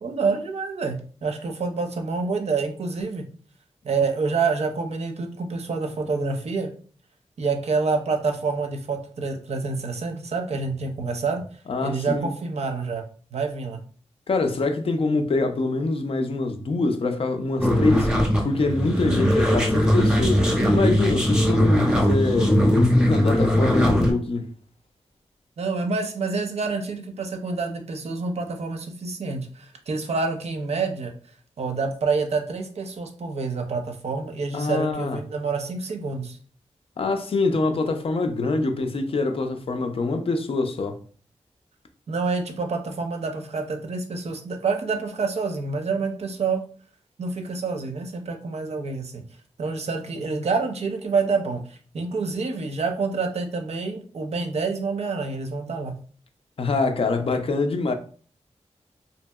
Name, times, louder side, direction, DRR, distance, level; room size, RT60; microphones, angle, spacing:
voice 1, 0.0-3.2 3.8-6.7 7.4-11.4 11.8-13.0 13.3-13.8 25.6-31.1 31.6-36.4 42.1-46.6 47.2-49.2 49.6-55.9, right 4 dB, 65° right, 0.5 m, -27 dB
voice 2, 11.7-12.3 14.3-18.1 18.4-22.5 23.0-24.5 34.5-35.2 37.0-41.0 56.6-57.9, left 3 dB, 55° left, 0.4 m, -25 dB
sound 1, 17.6-24.1, equal, 5° right, 0.6 m, -20 dB
2.7 x 2.7 x 2.2 m
wide cardioid pair, 105°, 12 cm